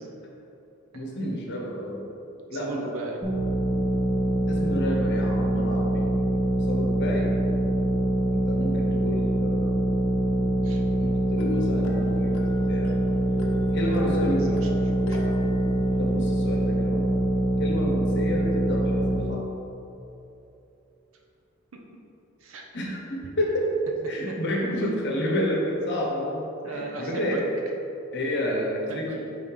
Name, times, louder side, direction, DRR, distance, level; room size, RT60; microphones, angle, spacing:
voice 1, 0.9-2.0 2.5-2.8 4.5-6.1 6.7-7.3 8.3-9.9 10.9-13.0 13.7-14.4 16.0-17.1 17.6-19.4 22.7-23.6 24.1-27.4 28.1-29.2, equal, 55° left, -2 dB, 1.1 m, -30 dB
voice 2, 2.5-3.2 10.6-10.8 13.7-15.5 21.7-21.8 22.4-22.6 26.6-27.4 28.9-29.1, right 2 dB, 70° right, 1 dB, 0.8 m, -36 dB
sound 1, 3.2-19.2, right 1 dB, 25° right, 1.3 m, -24 dB
sound 2, 11.4-16.8, left 3 dB, 80° left, 0.7 m, -38 dB
5.6 x 3.8 x 4.8 m, 2.9 s
head